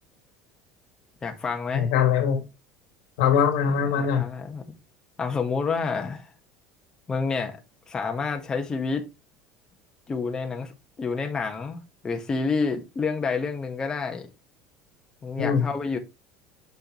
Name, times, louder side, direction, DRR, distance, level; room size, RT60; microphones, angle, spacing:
voice 1, 1.2-1.9 3.9-4.6 5.2-6.3 7.1-7.6 7.9-9.0 10.1-14.3 15.2-16.0, left 4 dB, 25° left, 1.3 m, -29 dB
voice 2, 1.7-2.4 3.2-4.3 15.4-15.7, left 7 dB, 80° left, 1.9 m, -22 dB
6.6 x 6.4 x 3.0 m
supercardioid pair, 110°, 3 cm